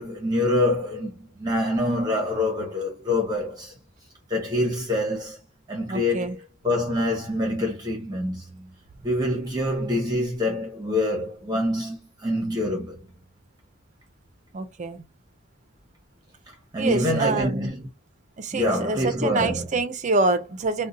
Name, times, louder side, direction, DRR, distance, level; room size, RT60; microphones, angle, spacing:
voice 1, 0.0-3.7 4.3-5.4 5.7-6.4 6.6-8.7 9.0-13.0 16.7-17.9 18.5-19.7, left 1 dB, 20° right, 0.8 m, -26 dB
voice 2, 5.9-6.4 14.5-15.0 16.8-17.7 18.4-20.9, right 3 dB, 35° right, 0.5 m, -26 dB
2.7 x 2.1 x 3.7 m
head